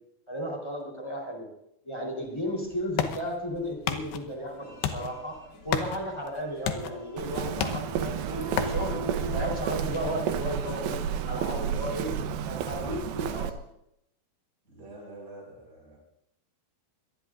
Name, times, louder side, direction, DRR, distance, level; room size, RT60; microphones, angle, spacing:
voice 1, 0.3-1.5 1.8-5.4 5.6-12.2 12.4-13.5, equal, 5° left, 0 dB, 3.1 m, -34 dB
sound 1, 2.2-13.7, left 8 dB, 90° left, 3.1 m, -37 dB
sound 2, 4.5-9.5, left 2 dB, 55° left, 5.5 m, -42 dB
Walk footsteps, 7.2-13.5, right 8 dB, 75° right, 2.5 m, -31 dB
voice 2, 8.1-8.6 14.6-16.0, right 2 dB, 20° right, -2 dB, 5.7 m, -46 dB
24.0 x 18.5 x 2.5 m, 0.79 s
omnidirectional pair, 4.7 m